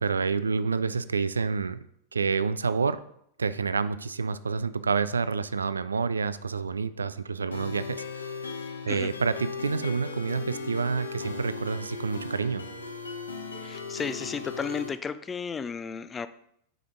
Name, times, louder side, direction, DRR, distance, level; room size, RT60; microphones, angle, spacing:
voice 1, 0.0-1.8 2.1-3.0 3.4-8.4 8.8-12.6, right 5 dB, 75° right, 15 dB, 0.3 m, -28 dB
sound 1, 7.5-14.9, left 4 dB, 75° left, 0.9 m, -37 dB
voice 2, 13.6-16.3, left 6 dB, 20° left, 13 dB, 0.4 m, -33 dB
7.8 x 5.0 x 3.8 m, 0.70 s
figure-of-eight pair, 90°, 0 cm